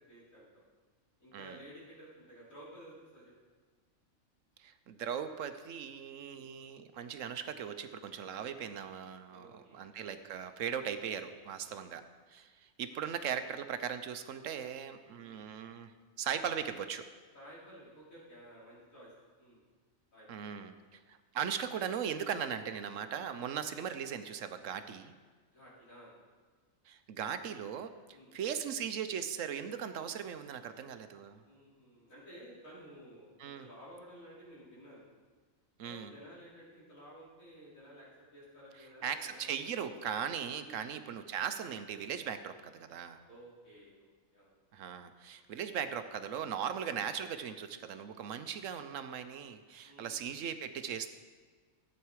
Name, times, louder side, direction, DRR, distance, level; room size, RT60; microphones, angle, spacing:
voice 1, 0.1-0.6 1.2-3.3 6.2-6.5 9.3-9.9 11.6-11.8 12.9-13.2 15.1-15.4 17.3-19.1 19.4-19.6 20.1-20.7 23.2-23.5 25.5-26.1 28.1-28.4 31.4-35.0 35.8-39.9 40.6-40.8 43.3-44.5 49.8-50.1, equal, 85° left, -8 dB, 4.7 m, -54 dB
voice 2, 4.6-12.0 12.3-15.9 16.2-17.1 20.3-25.1 26.9-31.4 33.4-33.7 35.8-36.1 39.0-43.2 44.7-51.1, right 8 dB, 75° right, 10 dB, 1.1 m, -39 dB
14.5 x 8.4 x 4.7 m, 1.5 s
omnidirectional pair, 1.4 m